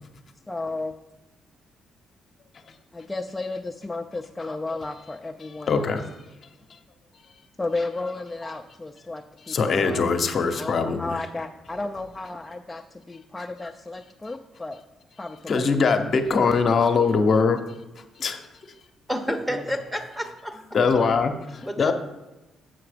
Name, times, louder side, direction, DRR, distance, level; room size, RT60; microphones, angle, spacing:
voice 1, 0.5-0.9 2.9-6.0 7.6-10.0 10.5-14.8 15.2-15.9 16.1-16.8 19.5-19.6 21.6-21.7, left 2 dB, 15° left, 3 dB, 0.5 m, -33 dB
voice 2, 5.7-6.1 9.5-11.1 15.5-17.6 18.2-18.4 20.7-21.9, left 5 dB, 50° left, 6 dB, 0.8 m, -22 dB
voice 3, 19.1-20.6 21.7-21.9, equal, 5° right, 7 dB, 1.0 m, -29 dB
7.9 x 5.8 x 5.0 m, 1.0 s
cardioid pair, 90°, 0 cm